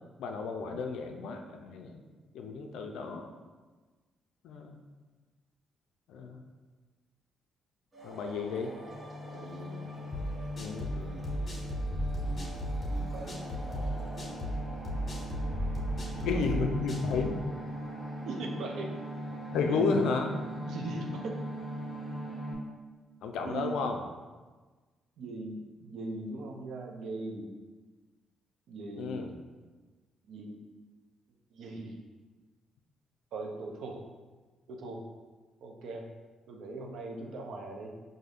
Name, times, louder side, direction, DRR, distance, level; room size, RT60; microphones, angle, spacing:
voice 1, 0.2-2.0 2.3-3.3 4.4-4.8 6.1-6.4 8.0-8.7 10.6-10.9 16.2-17.4 19.5-20.3 23.2-24.0 29.0-29.3, left 4 dB, 85° left, 4 dB, 0.4 m, -32 dB
sound 1, 7.9-22.5, equal, 25° right, 1.1 m, -40 dB
voice 2, 9.3-9.9 10.9-11.3 12.2-12.5 12.8-13.4 16.0-16.6 18.3-18.9 19.6-20.1 20.6-21.4 23.4-23.8 25.2-27.5 28.7-29.2 30.2-30.6 31.5-32.0 33.3-34.0 34.7-35.0 35.6-36.0 36.5-37.9, right 2 dB, 75° right, 1 dB, 0.5 m, -40 dB
sound 2, 10.1-17.3, equal, 35° left, 1.3 m, -34 dB
4.9 x 2.6 x 2.4 m, 1.3 s
cardioid pair, 90°, 0 cm